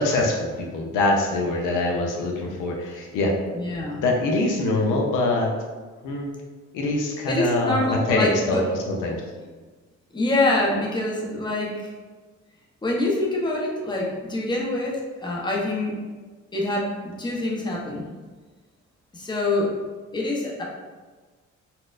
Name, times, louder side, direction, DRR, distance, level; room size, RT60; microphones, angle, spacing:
voice 1, 0.0-3.4 4.0-5.5 6.0-6.3 6.7-7.8 8.1-9.2, left 2 dB, 90° left, 0 dB, 0.6 m, -24 dB
voice 2, 3.5-4.0 4.7-4.9 7.3-8.6 10.1-11.9 12.8-16.0 16.5-18.1 19.1-19.8 20.1-20.6, left 2 dB, 15° left, -2 dB, 0.7 m, -25 dB
4.2 x 2.1 x 2.4 m, 1.4 s
cardioid pair, 90°, 30 cm